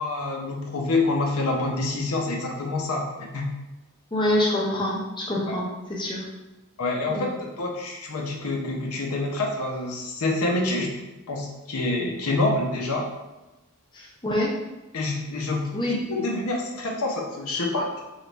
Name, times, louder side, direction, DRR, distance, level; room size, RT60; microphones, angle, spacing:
voice 1, 0.0-3.5 5.5-5.6 6.8-10.9 11.3-13.1 14.9-18.0, left 2 dB, 75° left, 0 dB, 0.6 m, -27 dB
voice 2, 4.1-6.3 7.1-7.3 13.9-14.5 15.7-16.0, left 1 dB, 20° left, -4 dB, 0.6 m, -26 dB
3.3 x 2.4 x 3.9 m, 1.0 s
head